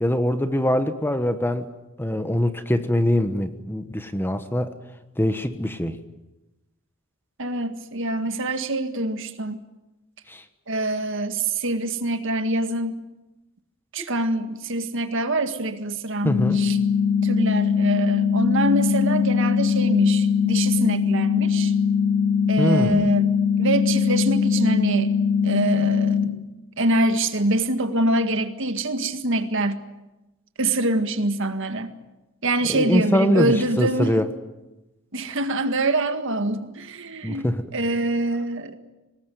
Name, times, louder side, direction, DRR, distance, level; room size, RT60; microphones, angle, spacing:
voice 1, 0.0-1.7 2.0-4.7 5.2-6.0 10.3-10.4 14.0-14.1 16.2-16.6 22.6-23.1 32.7-34.3 37.2-37.6, left 1 dB, 10° left, 9 dB, 1.2 m, -23 dB
voice 2, 7.4-9.6 10.7-13.0 13.9-16.8 17.2-21.7 22.5-23.3 23.6-25.2 25.4-26.2 26.8-29.8 30.6-31.9 32.4-34.2 35.1-38.8, right 2 dB, 60° right, 8 dB, 1.9 m, -25 dB
sound 1, 16.2-26.2, left 6 dB, 90° left, 3.0 m, -21 dB
25.0 x 19.5 x 9.4 m, 1.0 s
head